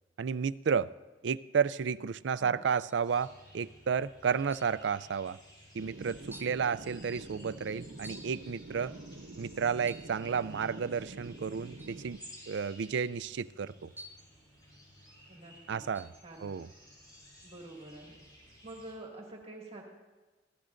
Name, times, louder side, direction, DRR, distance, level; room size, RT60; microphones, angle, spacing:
voice 1, 0.2-0.9 1.2-5.4 5.7-8.9 9.4-12.2 12.5-13.9 15.7-16.1 16.4-16.7, right 6 dB, 65° right, 17 dB, 0.4 m, -32 dB
sound 1, 2.8-3.1 4.5-4.8 5.6-5.7 6.3-6.6 8.0-8.4 9.8-10.2 11.8-12.0 14.0-14.4 16.0-16.2, equal, 10° right, 0.8 m, -51 dB
sound 2, 3.0-18.9, equal, 25° left, 5.9 m, -55 dB
sound 3, 5.8-12.2, right 2 dB, 90° right, 0.8 m, -47 dB
voice 2, 15.3-15.8 16.2-16.5 17.4-18.2 18.6-19.8, right 2 dB, 35° right, -1 dB, 2.1 m, -47 dB
24.0 x 16.5 x 2.6 m, 1.3 s
head